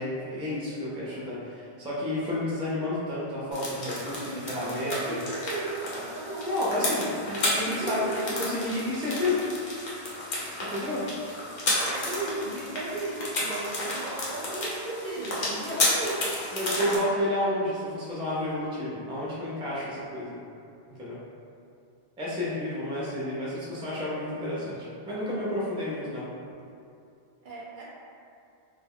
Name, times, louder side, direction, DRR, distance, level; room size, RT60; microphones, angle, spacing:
voice 1, 0.0-5.2 6.4-9.9 10.4-11.1 15.6-15.8 16.5-20.3 21.0-21.2 22.2-26.3, left 1 dB, 10° right, -8 dB, 0.3 m, -31 dB
sound 1, 3.5-17.0, left 1 dB, 50° left, 0.7 m, -32 dB
voice 2, 4.1-6.5 7.6-8.3 8.6-8.7 11.7-16.1 27.4-27.8, right 3 dB, 60° right, -6 dB, 0.6 m, -36 dB
2.2 x 2.1 x 3.5 m, 2.5 s
omnidirectional pair, 1.0 m